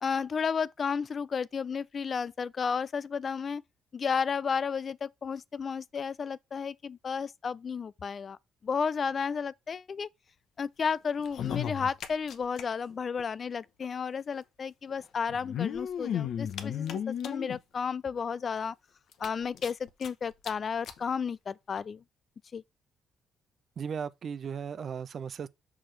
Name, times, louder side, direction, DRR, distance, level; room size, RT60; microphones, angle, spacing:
voice 1, 0.0-3.6 3.9-8.4 8.6-10.1 10.6-18.7 19.2-22.0 22.5-22.6, left 6 dB, 45° left, 0.4 m, -32 dB
sound 1, 11.2-12.6 12.9-13.0 13.2-13.3 14.3-14.4 15.3-17.6 18.2-18.3 18.6-18.7 19.1-20.1 20.4-20.5 20.8-21.0 21.8-21.9, left 9 dB, 75° left, 0.9 m, -34 dB
voice 2, 23.8-25.5, right 7 dB, 55° right, 0.5 m, -36 dB
6.1 x 6.1 x 3.3 m
cardioid pair, 90°, 0 cm